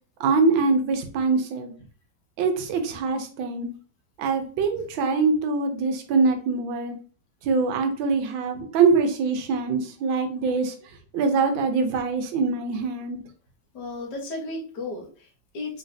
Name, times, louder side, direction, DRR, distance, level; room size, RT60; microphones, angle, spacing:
voice 1, 0.2-1.7 2.4-3.7 4.2-6.9 7.4-10.7 11.1-13.2, right 4 dB, 85° right, 5 dB, 1.5 m, -23 dB
voice 2, 13.7-15.8, left 2 dB, 65° left, 1 dB, 1.6 m, -34 dB
3.9 x 3.3 x 2.6 m, 0.41 s
omnidirectional pair, 2.1 m